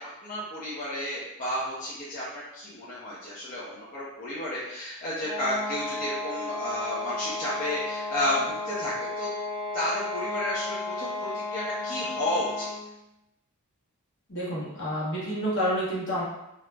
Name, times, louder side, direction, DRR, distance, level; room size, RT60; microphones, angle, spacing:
voice 1, 0.0-9.3 9.7-12.7, left 1 dB, 40° left, -9 dB, 0.5 m, -32 dB
sound 1, 5.2-12.9, left 2 dB, 20° right, 0.5 m, -34 dB
voice 2, 14.3-16.2, equal, 60° left, -7 dB, 1.0 m, -29 dB
2.4 x 2.0 x 3.2 m, 0.87 s
head